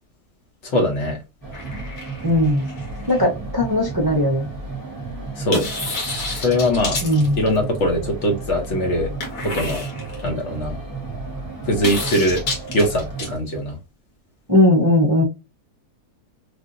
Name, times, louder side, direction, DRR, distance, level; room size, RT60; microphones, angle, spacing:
voice 1, 0.6-1.2 5.4-5.6 6.3-7.0 7.4-9.1 9.5-9.8 10.2-10.8 11.7-12.4 12.7-13.8, left 1 dB, 55° left, 3 dB, 1.0 m, -21 dB
sound 1, 1.4-13.4, right 3 dB, 15° left, 0.9 m, -33 dB
sound 2, 1.5-3.2 5.5-7.8 9.2-10.3 11.8-13.3, left 2 dB, 85° left, 1.8 m, -29 dB
voice 2, 2.2-2.7 3.1-4.5 7.0-7.4 14.5-15.2, left 1 dB, 25° right, -3 dB, 0.5 m, -18 dB
3.4 x 2.5 x 2.5 m, 0.26 s
omnidirectional pair, 1.6 m